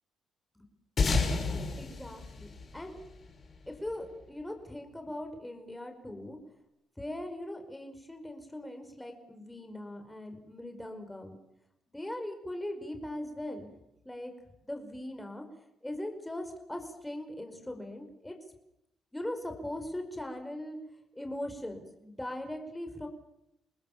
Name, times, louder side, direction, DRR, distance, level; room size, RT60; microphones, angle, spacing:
sound 1, 1.0-3.7, left 4 dB, 45° left, 6.2 m, -31 dB
voice 1, 1.8-3.0 3.7-6.4 7.0-11.3 11.9-13.7 14.0-14.3 14.6-15.4 15.8-18.4 19.1-20.8 21.1-23.1, left 1 dB, 10° left, 5 dB, 5.1 m, -40 dB
28.5 x 19.5 x 7.3 m, 0.84 s
cardioid pair, 90°, 0 cm